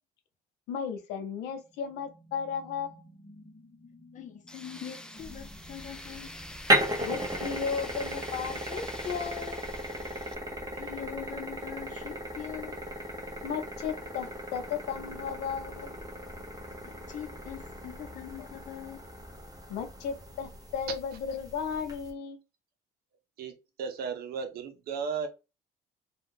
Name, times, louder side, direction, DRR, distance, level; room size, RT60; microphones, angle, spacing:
voice 1, 0.7-2.9 7.0-9.6 13.4-16.0 19.7-22.4, left 7 dB, 80° left, 0.7 m, -35 dB
sound 1, 1.4-7.8, equal, 20° left, 0.8 m, -55 dB
voice 2, 4.1-6.3 10.7-12.8 16.8-19.0, left 10 dB, 50° left, 0.7 m, -43 dB
Tools, 4.5-10.3, left 1 dB, 5° left, 0.3 m, -46 dB
sound 2, 5.2-22.1, right 1 dB, 20° right, 1.0 m, -36 dB
voice 3, 23.4-25.3, right 6 dB, 65° right, 0.7 m, -35 dB
2.6 x 2.3 x 3.5 m
cardioid pair, 110°, 17 cm